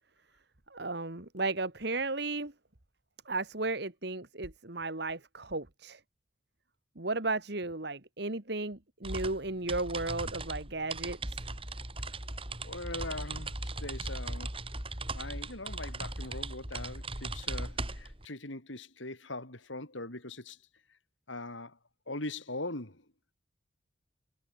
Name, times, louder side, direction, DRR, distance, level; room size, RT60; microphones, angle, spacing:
voice 1, 0.7-2.5 3.3-6.0 7.0-11.4, right 3 dB, 55° right, 1.9 m, -34 dB
sound 1, 9.0-18.3, right 2 dB, 30° right, 6.5 m, -38 dB
voice 2, 12.6-14.5 15.1-20.6 21.3-21.7 22.1-23.0, left 2 dB, 75° left, 5.3 m, -41 dB
head